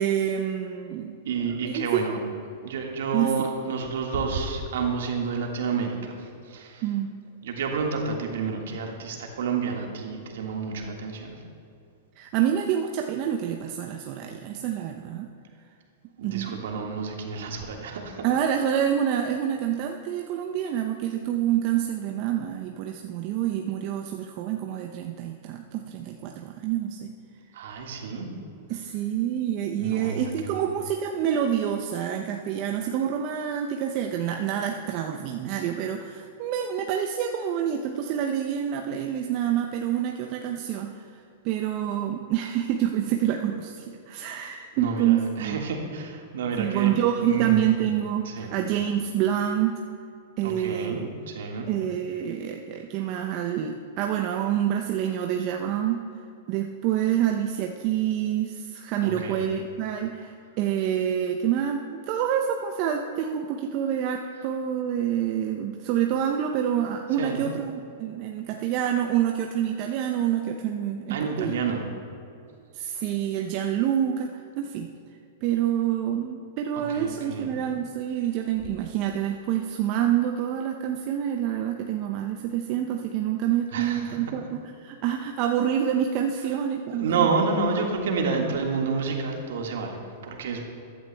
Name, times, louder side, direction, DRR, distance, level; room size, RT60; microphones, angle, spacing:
voice 1, 0.0-1.2 1.6-2.0 3.1-3.3 6.8-7.1 12.2-15.3 16.2-16.6 18.2-27.1 28.7-41.0 41.4-45.6 46.6-49.8 50.4-51.1 51.7-56.0 56.5-67.7 68.0-71.5 72.7-74.9 75.4-87.3, right 10 dB, 45° right, 3 dB, 0.6 m, -27 dB
voice 2, 1.2-2.2 2.6-6.8 7.4-11.4 16.2-18.2 27.5-28.3 29.7-30.6 44.8-46.9 47.2-47.6 48.2-48.5 50.4-51.7 59.0-59.4 67.2-67.4 71.1-71.9 76.9-77.5 83.7-84.2 86.9-90.6, right 4 dB, 70° right, 1 dB, 1.6 m, -29 dB
15.0 x 11.0 x 2.2 m, 2.6 s
hypercardioid pair, 110°, 0 cm